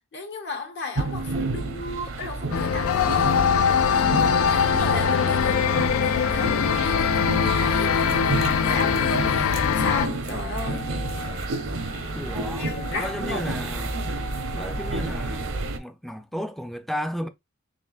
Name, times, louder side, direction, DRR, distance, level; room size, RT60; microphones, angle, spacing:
voice 1, 0.0-10.9 12.6-13.5, left 3 dB, 55° left, 1.0 m, -35 dB
sound 1, 0.9-15.8, right 2 dB, 75° right, 0.8 m, -30 dB
sound 2, 2.5-10.1, left 7 dB, 80° left, 0.4 m, -22 dB
Wind instrument woodwind instrument, 10.5-15.6, left 2 dB, 35° left, 0.7 m, -42 dB
voice 2, 12.1-14.0 14.5-17.3, equal, ahead, 0.4 m, -33 dB
4.4 x 3.3 x 2.3 m
head